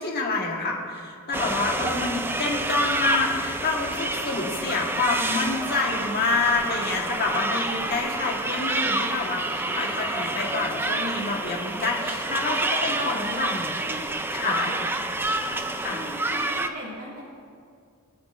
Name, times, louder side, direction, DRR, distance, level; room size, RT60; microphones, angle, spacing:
voice 1, 0.0-13.7 14.3-14.7 15.8-16.0, left 3 dB, 50° left, -1 dB, 1.4 m, -27 dB
sound 1, 1.3-16.7, right 2 dB, 10° right, 0.4 m, -28 dB
voice 2, 14.4-17.2, right 1 dB, 70° right, -9 dB, 2.3 m, -38 dB
23.5 x 8.3 x 2.5 m, 2.3 s
head